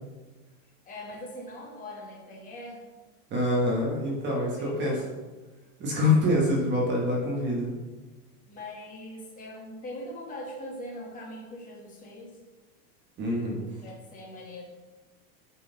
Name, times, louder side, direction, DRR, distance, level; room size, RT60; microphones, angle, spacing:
voice 1, 0.8-2.9 4.4-5.1 8.4-12.3 13.8-14.6, left 1 dB, 15° left, -2 dB, 1.3 m, -41 dB
voice 2, 3.3-5.0 5.8-7.7 13.2-13.6, left 1 dB, 20° right, -2 dB, 1.1 m, -25 dB
8.2 x 3.8 x 3.8 m, 1.2 s
supercardioid pair, 165°, 48 cm